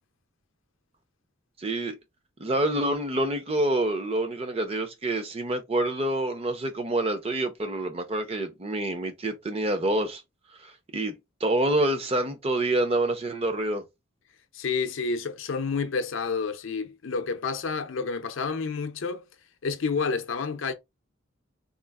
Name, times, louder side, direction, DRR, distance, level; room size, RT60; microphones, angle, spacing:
voice 1, 1.6-2.0 2.4-10.2 10.6-13.8, right 1 dB, 30° right, 0.6 m, -27 dB
voice 2, 14.5-19.2 19.6-20.7, left 4 dB, 75° left, 0.5 m, -29 dB
3.7 x 2.4 x 2.3 m
head